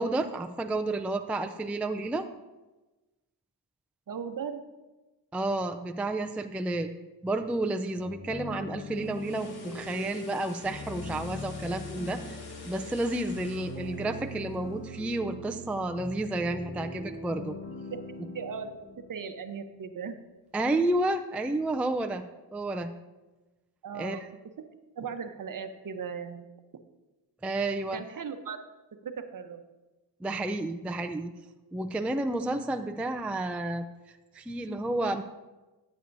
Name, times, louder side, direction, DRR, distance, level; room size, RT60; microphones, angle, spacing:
voice 1, 0.0-2.3 5.3-6.9 7.2-12.4 12.6-17.6 20.5-22.2 22.5-22.9 23.9-24.3 27.4-28.0 30.2-31.3 31.7-33.9 34.3-35.2, right 2 dB, 5° right, 7 dB, 0.3 m, -31 dB
voice 2, 4.1-4.6 17.9-18.0 18.3-18.8 19.1-20.2 23.8-24.2 24.6-24.7 24.9-26.5 27.9-28.6 29.0-29.6, right 6 dB, 45° right, 8 dB, 0.8 m, -37 dB
sound 1, 8.0-19.7, left 1 dB, 30° left, 1.3 m, -42 dB
sound 2, 8.8-15.0 15.3-15.5, left 2 dB, 60° left, 1.5 m, -49 dB
14.0 x 8.1 x 2.6 m, 1.1 s
cardioid pair, 85°, 44 cm